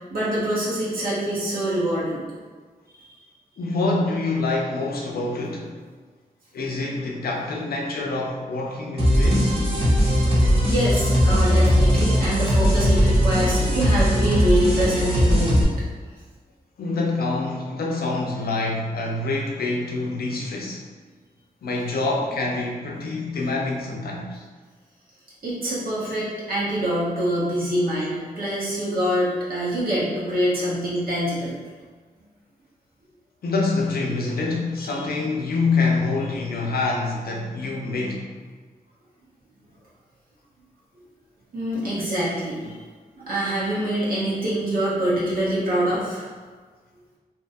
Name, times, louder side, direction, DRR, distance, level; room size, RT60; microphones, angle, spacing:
voice 1, 0.0-2.2 2.9-3.0 10.0-10.2 10.7-15.7 25.4-31.5 34.8-35.0 41.5-42.8 43.1-46.3, right 1 dB, 70° right, -8 dB, 0.9 m, -25 dB
voice 2, 3.6-5.8 6.5-9.6 16.8-20.8 21.6-24.4 33.4-38.3 42.6-42.7, left 3 dB, 75° left, -1 dB, 0.5 m, -26 dB
sound 1, 9.0-15.6, equal, 35° right, 0.9 m, -19 dB
2.7 x 2.2 x 2.6 m, 1.5 s
cardioid pair, 55°, 16 cm